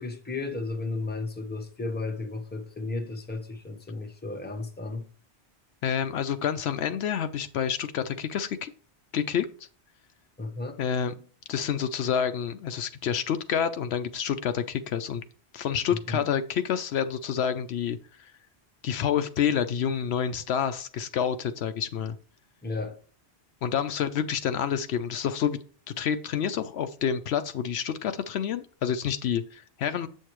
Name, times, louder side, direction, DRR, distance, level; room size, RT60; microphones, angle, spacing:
voice 1, 0.0-5.1 10.4-10.8 16.1-16.3 22.6-23.0, left 3 dB, 10° left, 0.9 m, -34 dB
voice 2, 5.8-8.7 9.1-9.5 10.8-11.1 11.5-15.2 15.5-18.3 18.8-22.2 23.6-25.6 26.0-30.1, left 8 dB, 75° left, 0.8 m, -28 dB
7.9 x 6.5 x 3.0 m
omnidirectional pair, 1.1 m